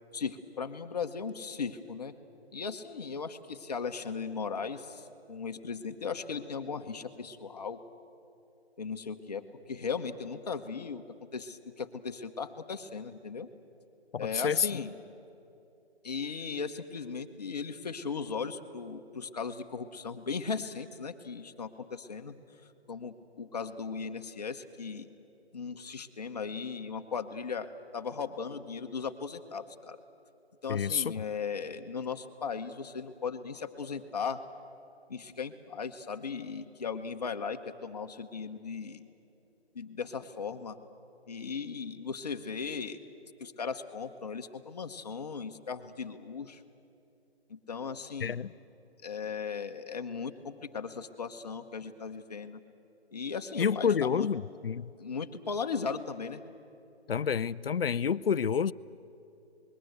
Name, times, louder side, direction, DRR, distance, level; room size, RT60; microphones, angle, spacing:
voice 1, 0.1-2.1 2.5-7.8 8.8-11.0 11.3-13.5 14.2-14.9 16.0-22.4 22.9-25.1 25.5-30.0 30.6-34.4 35.1-39.0 39.7-40.8 41.3-43.0 43.4-46.6 47.5-48.4 49.0-52.6 53.1-54.3 55.0-56.4, left 5 dB, 35° left, 1.1 m, -37 dB
voice 2, 14.1-14.8 30.7-31.1 48.2-48.5 53.6-54.9 57.1-58.7, left 7 dB, 60° left, 0.6 m, -29 dB
27.0 x 21.0 x 8.0 m
figure-of-eight pair, 165°, 33 cm